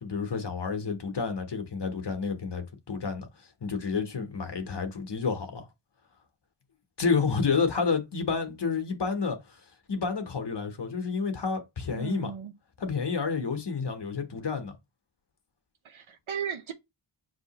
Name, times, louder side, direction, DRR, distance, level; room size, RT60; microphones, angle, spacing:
voice 1, 0.0-3.3 3.6-5.7 7.0-9.4 9.9-12.3 12.8-14.8, left 5 dB, 55° left, 0.9 m, -30 dB
voice 2, 11.9-12.5 15.8-16.7, right 8 dB, 75° right, 0.7 m, -36 dB
6.0 x 2.8 x 2.8 m
wide cardioid pair, 75°, 49 cm